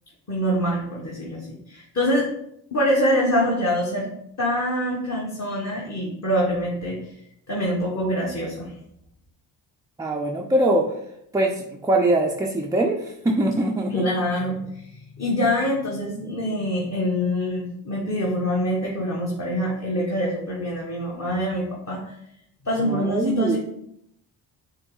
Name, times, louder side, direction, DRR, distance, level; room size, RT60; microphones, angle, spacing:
voice 1, 0.3-2.3 2.7-4.1 4.4-7.1 7.5-8.7 13.9-22.1 22.6-23.6, equal, 35° left, -3 dB, 1.1 m, -25 dB
voice 2, 10.0-11.0 11.3-14.0 22.8-23.6, right 1 dB, 10° right, 0 dB, 0.3 m, -23 dB
5.4 x 2.0 x 3.8 m, 0.77 s
supercardioid pair, 55°, 47 cm